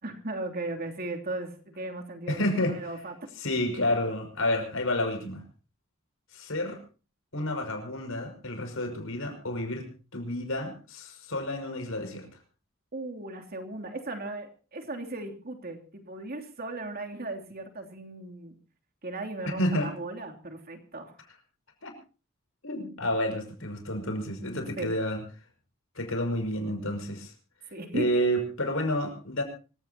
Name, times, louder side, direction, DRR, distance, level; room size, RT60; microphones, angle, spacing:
voice 1, 0.0-3.2 12.9-18.5 19.0-21.1 24.8-24.9 27.7-28.1, right 2 dB, 50° right, 3 dB, 3.0 m, -37 dB
voice 2, 2.3-2.8 3.4-5.4 6.3-6.8 7.3-12.3 19.5-19.9 21.8-21.9 22.6-25.2 25.9-27.3 27.9-29.4, left 1 dB, 75° left, 4 dB, 6.1 m, -30 dB
25.5 x 16.5 x 2.9 m, 0.36 s
head